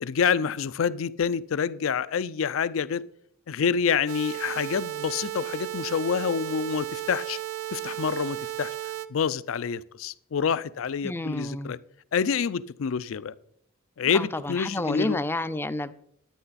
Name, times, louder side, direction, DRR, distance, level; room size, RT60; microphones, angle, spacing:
voice 1, 0.0-3.0 3.5-7.4 7.7-8.7 9.1-11.8 12.1-13.3 14.0-15.2, left 6 dB, 70° left, 0.4 m, -27 dB
sound 1, 4.1-9.1, right 13 dB, 90° right, 0.5 m, -34 dB
voice 2, 11.0-11.7 14.1-16.0, left 2 dB, 10° left, 0.4 m, -30 dB
10.0 x 9.5 x 4.1 m
head